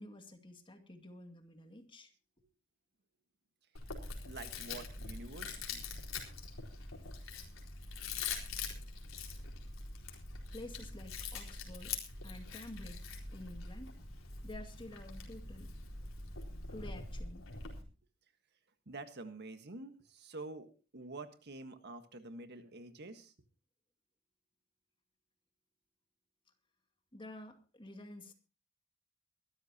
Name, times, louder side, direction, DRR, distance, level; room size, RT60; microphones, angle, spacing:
voice 1, 0.0-2.1 10.5-12.0 12.2-13.9 14.4-15.7 16.7-17.4 27.1-28.3, left 1 dB, 25° left, 5 dB, 2.3 m, -50 dB
Chewing mastication, 3.8-17.8, left 4 dB, 80° left, 4.2 m, -44 dB
voice 2, 4.2-6.0 18.8-20.7 20.9-23.3, right 2 dB, 55° right, 8 dB, 1.5 m, -48 dB
23.0 x 13.0 x 2.9 m, 0.33 s
head